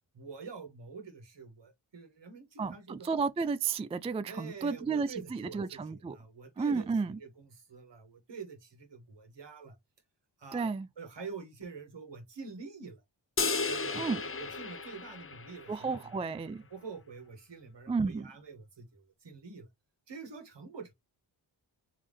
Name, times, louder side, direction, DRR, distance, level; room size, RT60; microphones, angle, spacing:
voice 1, 0.1-3.1 4.3-9.7 10.4-13.0 13.7-16.2 16.7-19.7 20.1-20.9, right 5 dB, 60° right, 1.7 m, -46 dB
voice 2, 2.6-6.2 6.6-7.2 10.5-10.9 13.9-14.2 15.7-16.6 17.9-18.3, right 4 dB, 15° right, 0.3 m, -32 dB
sound 1, 13.4-15.9, left 4 dB, 30° left, 0.7 m, -34 dB
3.7 x 3.2 x 3.3 m
cardioid pair, 40°, 48 cm